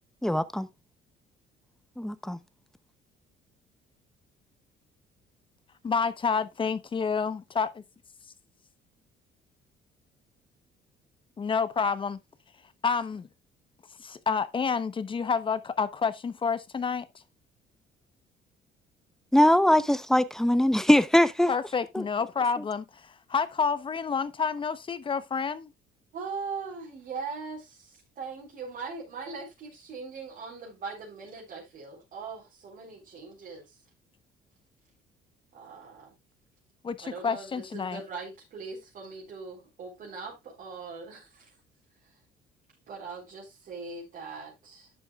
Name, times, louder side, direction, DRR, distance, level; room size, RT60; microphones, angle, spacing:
voice 1, 0.2-0.7 2.0-2.4 19.3-21.5 21.9-22.0, left 1 dB, 5° left, 0.8 m, -21 dB
voice 2, 5.8-7.8 11.4-12.2 12.8-13.3 14.0-17.1 21.5-25.7 36.8-38.0, left 5 dB, 30° left, 1.0 m, -29 dB
voice 3, 26.1-33.8 35.5-36.1 37.0-41.5 42.0-42.1 42.9-44.9, right 4 dB, 55° right, 4.2 m, -40 dB
12.0 x 7.8 x 2.4 m
cardioid pair, 110°, 17 cm